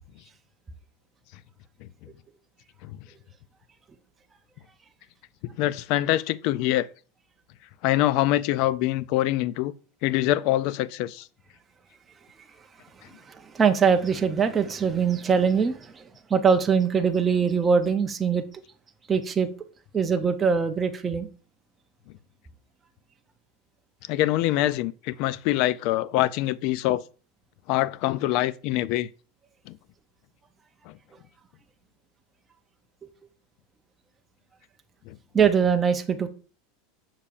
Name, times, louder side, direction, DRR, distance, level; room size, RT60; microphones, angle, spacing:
voice 1, 5.4-6.9 7.8-9.7 10.0-11.3 24.1-27.0 27.7-29.1 29.7-29.8 30.9-31.0 35.1-35.2, left 15 dB, 55° left, 0.3 m, -24 dB
voice 2, 13.3-16.0 16.3-18.4 19.1-19.5 19.9-21.3 35.3-36.3, right 6 dB, 15° right, 0.5 m, -22 dB
6.7 x 5.7 x 2.5 m
supercardioid pair, 145°, 0 cm